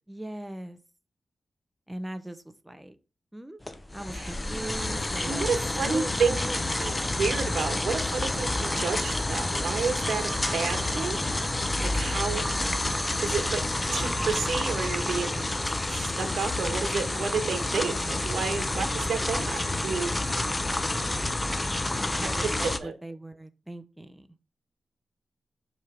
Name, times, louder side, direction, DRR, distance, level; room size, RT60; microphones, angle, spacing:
voice 1, 0.1-0.8 1.9-3.0 3.3-3.6 3.9-5.5 5.8-6.6 18.7-18.8 22.2-24.3, right 1 dB, 10° right, 10 dB, 0.9 m, -39 dB
sound 1, 3.6-22.8, left 2 dB, 20° left, 0.7 m, -29 dB
voice 2, 5.2-6.4 6.8-11.2 11.8-12.4 13.0-13.6 13.9-15.5 15.9-20.1 22.2-22.9, right 5 dB, 75° right, 6 dB, 1.3 m, -31 dB
sound 2, 9.6-16.4, right 4 dB, 55° right, 3.4 m, -44 dB
5.4 x 4.7 x 5.1 m, 0.33 s
cardioid pair, 80°, 0 cm